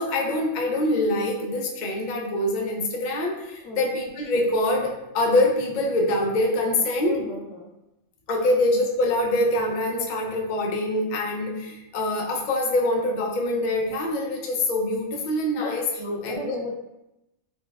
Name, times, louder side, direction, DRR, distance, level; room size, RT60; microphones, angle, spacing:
voice 1, 0.0-7.2 8.3-15.9 16.2-16.6, left 1 dB, 55° left, 0 dB, 0.5 m, -24 dB
voice 2, 7.0-7.7 15.5-15.7 16.0-16.7, left 2 dB, 85° left, -3 dB, 1.2 m, -34 dB
4.5 x 2.2 x 2.2 m, 0.90 s
omnidirectional pair, 1.3 m